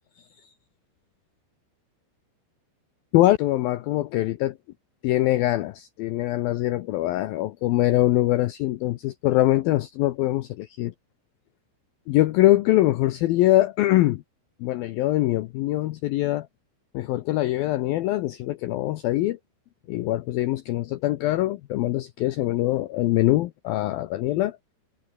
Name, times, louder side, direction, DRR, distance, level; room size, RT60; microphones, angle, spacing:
voice 1, 3.1-4.6 5.0-10.9 12.1-14.2 14.6-16.5 16.9-19.4 19.9-24.6, left 16 dB, 85° left, 2.1 m, -23 dB
omnidirectional pair, 5.3 m